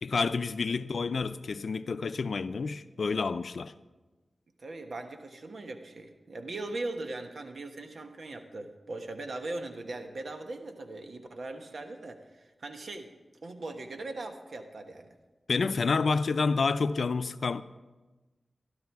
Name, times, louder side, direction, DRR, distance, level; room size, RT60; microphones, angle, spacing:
voice 1, 0.0-3.7 15.5-17.6, left 4 dB, 75° left, 0.5 m, -29 dB
voice 2, 4.6-13.1 13.4-15.1, right 2 dB, 70° right, 1.2 m, -40 dB
13.0 x 12.5 x 4.7 m
cardioid pair, 55°, 0 cm